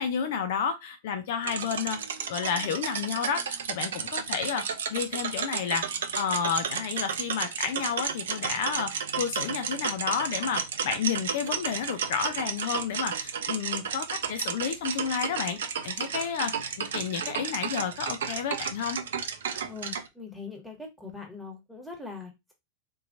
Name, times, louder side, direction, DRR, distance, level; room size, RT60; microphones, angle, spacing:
voice 1, 0.0-2.0 2.3-4.6 4.9-5.8 6.1-8.9 9.2-15.6 15.8-19.0, left 7 dB, 55° left, 0.5 m, -31 dB
sound 1, 1.4-20.1, right 7 dB, 60° right, 0.5 m, -33 dB
voice 2, 19.7-22.5, left 4 dB, ahead, 1.3 m, -41 dB
3.7 x 2.8 x 2.6 m
figure-of-eight pair, 90°, 0 cm